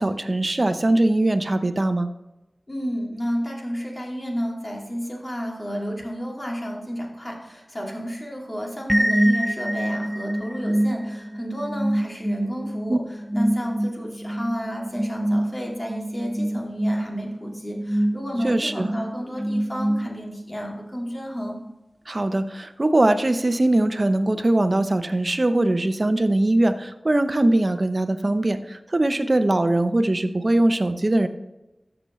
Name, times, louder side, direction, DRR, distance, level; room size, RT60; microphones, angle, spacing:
voice 1, 0.0-2.1 12.9-13.0 18.4-18.9 22.1-31.3, right 1 dB, 45° right, 10 dB, 0.7 m, -21 dB
voice 2, 2.7-21.6, equal, 35° left, -1 dB, 2.6 m, -31 dB
sound 1, 8.9-20.5, right 1 dB, 10° right, 0.5 m, -26 dB
13.5 x 6.9 x 3.1 m, 1.0 s
wide cardioid pair, 45°, 0 cm